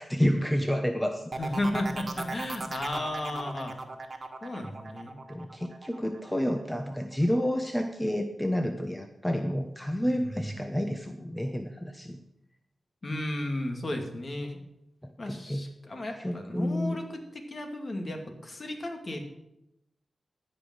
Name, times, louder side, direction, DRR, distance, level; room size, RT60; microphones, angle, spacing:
voice 1, 0.0-1.3 5.3-12.2 15.0-15.6 16.2-17.0, equal, 10° left, 5 dB, 1.0 m, -29 dB
sound 1, 1.3-6.9 7.3-7.8, right 3 dB, 45° right, 1.6 m, -38 dB
voice 2, 1.4-3.7 4.4-5.1 10.0-10.6 13.0-14.6 15.2-19.3, left 1 dB, 45° left, 3 dB, 2.5 m, -34 dB
13.5 x 5.4 x 7.8 m, 0.86 s
cardioid pair, 55°, 0 cm